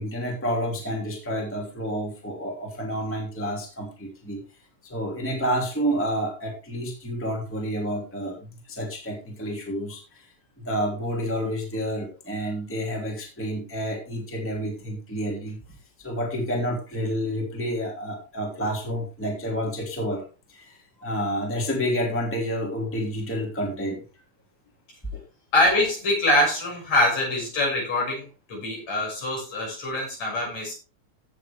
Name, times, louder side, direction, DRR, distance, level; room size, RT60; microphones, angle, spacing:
voice 1, 0.0-4.4 4.8-10.3 10.6-15.6 16.0-20.2 20.5-24.0 25.1-25.2, equal, 5° left, 0 dB, 2.6 m, -29 dB
voice 2, 25.5-30.8, left 1 dB, 60° left, -2 dB, 7.3 m, -24 dB
16.0 x 7.4 x 3.4 m, 0.33 s
omnidirectional pair, 3.5 m